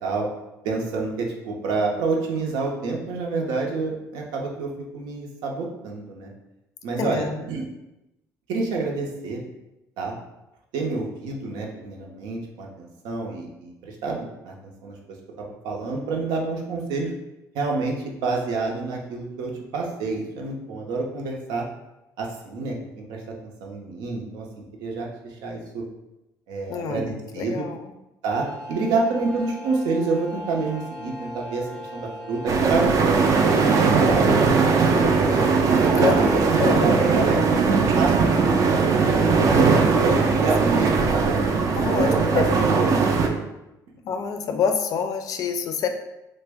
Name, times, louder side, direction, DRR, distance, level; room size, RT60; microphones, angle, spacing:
voice 1, 0.6-6.3 6.8-7.6 8.5-9.4 10.0-10.1 10.7-14.5 14.8-15.0 15.4-17.1 17.5-21.6 22.2-23.2 23.6-24.5 24.8-25.8 26.5-27.6 28.2-35.4 36.2-36.5 36.8-37.6 37.9-39.5 40.0-41.4 41.9-42.4 43.0-43.4, right 3 dB, 85° right, -1 dB, 0.7 m, -28 dB
voice 2, 7.0-7.5 26.7-27.9 35.8-37.0 40.4-40.7 41.7-42.4 42.9-43.0 44.0-45.9, left 6 dB, 55° left, 6 dB, 0.4 m, -27 dB
sound 1, 28.3-36.4, left 1 dB, 10° left, 0.6 m, -37 dB
sound 2, 32.5-43.3, right 4 dB, 50° right, 0.4 m, -19 dB
3.3 x 2.1 x 3.4 m, 0.94 s
cardioid pair, 120°, 7 cm